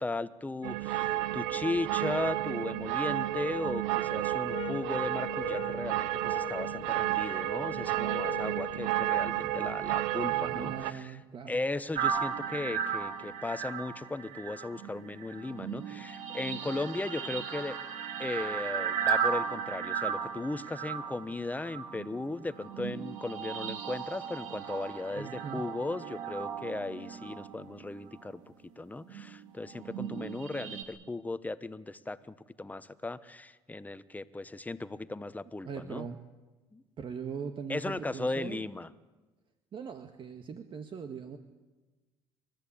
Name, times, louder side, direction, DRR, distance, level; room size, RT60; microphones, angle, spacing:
voice 1, 0.0-11.2 11.5-17.8 18.2-28.4 28.8-36.1 36.7-36.8 37.7-38.9, left 2 dB, 15° left, 14 dB, 1.2 m, -36 dB
sound 1, 0.6-10.9, right 15 dB, 90° right, 0.9 m, -31 dB
sound 2, 4.5-9.4, left 11 dB, 55° left, 1.3 m, -43 dB
voice 2, 10.3-11.6 25.1-25.6 35.6-36.2 37.0-38.6 39.7-41.4, right 6 dB, 45° right, 6 dB, 1.7 m, -40 dB
sound 3, 11.9-28.4 29.1-30.8, right 7 dB, 75° right, 2.8 m, -36 dB
29.5 x 13.5 x 8.7 m, 1.2 s
supercardioid pair, 85°, 12 cm